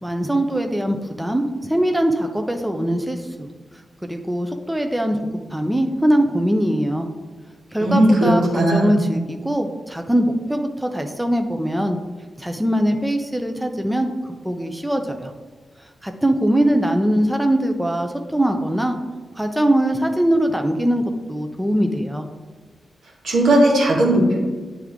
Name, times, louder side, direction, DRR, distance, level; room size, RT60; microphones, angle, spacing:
voice 1, 0.0-3.5 4.1-5.2 5.5-7.1 7.7-12.0 12.4-15.3 16.0-19.0 19.3-22.3, right 1 dB, 5° right, 5 dB, 0.6 m, -21 dB
voice 2, 7.8-8.9 23.2-24.4, right 1 dB, 85° right, -4 dB, 1.8 m, -16 dB
8.9 x 3.5 x 3.6 m, 1.4 s
cardioid pair, 55°, 0 cm